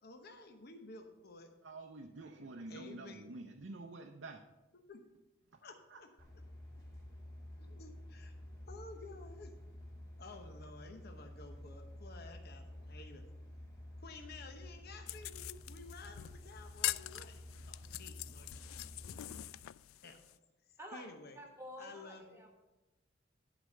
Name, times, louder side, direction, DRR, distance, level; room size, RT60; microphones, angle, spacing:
voice 1, 0.0-1.5 2.7-3.3 4.9-5.0 5.6-6.1 7.6-8.3 8.7-9.5 10.2-13.2 14.0-17.3 17.7-19.4 20.0-20.2 20.7-21.4 21.8-22.5, left 3 dB, 50° left, 5 dB, 0.9 m, -53 dB
voice 2, 1.6-4.4 5.5-5.6 5.9-6.0, right 2 dB, 65° right, 3 dB, 0.7 m, -48 dB
sound 1, 6.2-19.4, left 1 dB, 15° left, 2.8 m, -51 dB
sound 2, 15.1-20.4, left 16 dB, 85° left, 0.3 m, -43 dB
voice 3, 21.4-22.5, equal, 15° right, 1 dB, 1.4 m, -49 dB
11.5 x 5.1 x 6.5 m, 1.0 s
head